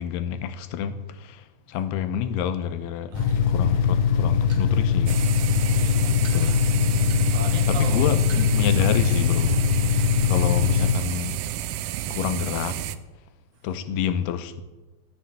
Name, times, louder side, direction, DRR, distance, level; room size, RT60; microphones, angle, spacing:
voice 1, 0.0-3.1 3.5-5.2 6.2-6.6 7.7-11.4 12.1-12.8 13.6-14.6, left 8 dB, 85° left, 2.9 m, -29 dB
sound 1, 3.1-10.9, left 7 dB, 70° left, 1.9 m, -21 dB
voice 2, 3.1-3.6 5.6-6.2 7.2-8.0 8.8-8.9, right 3 dB, 65° right, 3.3 m, -39 dB
sound 2, 4.1-9.0 9.3-9.6 9.8-10.1, right 2 dB, 25° right, 1.9 m, -48 dB
sound 3, 5.1-12.9, right 13 dB, 90° right, 1.8 m, -31 dB
14.5 x 7.1 x 8.7 m
omnidirectional pair, 4.5 m